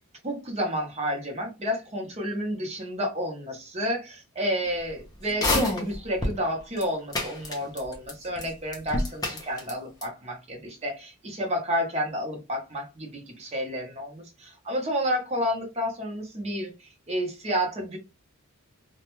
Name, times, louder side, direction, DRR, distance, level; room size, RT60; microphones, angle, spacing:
voice 1, 0.2-18.0, equal, 30° right, 0.7 m, -30 dB
sound 1, 5.3-6.4 6.8-6.9 7.1-8.1 8.4-8.5 8.7-9.7 10.0-10.1, left 1 dB, 15° left, 0.5 m, -26 dB
2.3 x 2.1 x 2.9 m
head